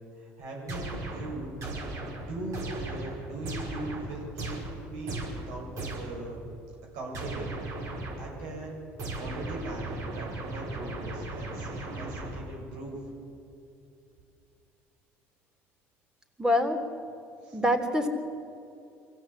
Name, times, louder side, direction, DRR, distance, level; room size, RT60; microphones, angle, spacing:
voice 1, 0.0-1.6 2.2-6.5 6.9-7.5 7.9-8.8 9.2-13.1 17.4-17.6, right 2 dB, 80° right, -1 dB, 7.4 m, -40 dB
sound 1, 0.7-6.3 7.1-8.4 9.0-12.7, right 2 dB, 60° right, 5.7 m, -37 dB
voice 2, 16.4-16.8 17.5-18.1, left 1 dB, 10° right, 5 dB, 3.5 m, -25 dB
23.5 x 16.0 x 8.5 m, 2.6 s
supercardioid pair, 85°, 6 cm